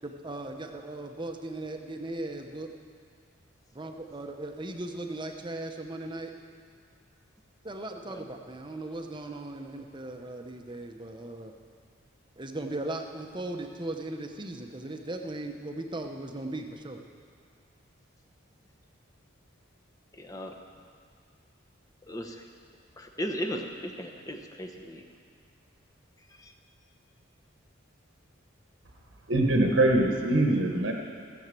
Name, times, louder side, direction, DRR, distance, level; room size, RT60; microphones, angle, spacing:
voice 1, 0.0-2.7 3.7-6.3 7.6-11.5 12.4-17.0, right 2 dB, 25° right, 4 dB, 0.9 m, -38 dB
voice 2, 20.2-20.5 22.1-22.3 23.0-25.0, equal, 15° left, 3 dB, 1.0 m, -36 dB
voice 3, 29.3-30.9, right 1 dB, 65° right, 1 dB, 1.2 m, -23 dB
16.5 x 7.2 x 7.7 m, 2.2 s
head